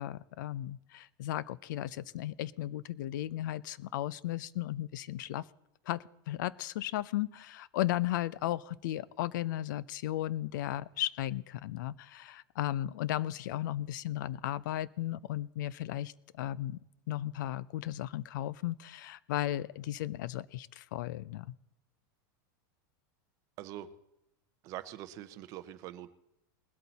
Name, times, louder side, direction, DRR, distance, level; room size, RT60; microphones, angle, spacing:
voice 1, 0.0-5.4 5.9-16.8 17.1-21.5, left 14 dB, 65° left, 21 dB, 0.4 m, -35 dB
voice 2, 23.6-23.9 24.6-26.1, right 13 dB, 30° right, 12 dB, 0.6 m, -43 dB
20.0 x 8.4 x 4.1 m, 0.83 s
supercardioid pair, 175°, 11 cm